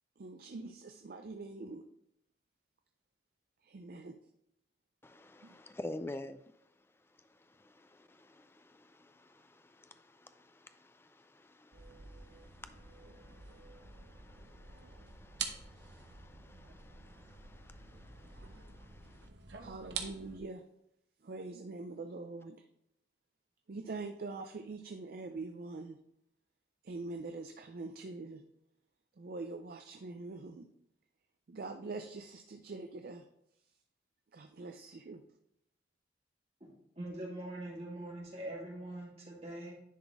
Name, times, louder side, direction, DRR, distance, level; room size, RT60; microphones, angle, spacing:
voice 1, 0.2-1.8 3.6-4.2 5.4-5.6 19.6-20.6 21.2-22.7 23.7-26.0 26.8-28.4 29.2-30.7 31.5-33.3 34.3-35.2, right 3 dB, 55° right, 6 dB, 0.4 m, -44 dB
voice 2, 5.0-6.4 7.2-19.3, left 1 dB, 15° left, 10 dB, 0.4 m, -51 dB
sound 1, 11.7-20.4, right 6 dB, 80° right, 0.9 m, -47 dB
voice 3, 37.0-39.7, right 1 dB, 35° right, -3 dB, 2.1 m, -43 dB
10.0 x 4.1 x 3.5 m, 0.76 s
head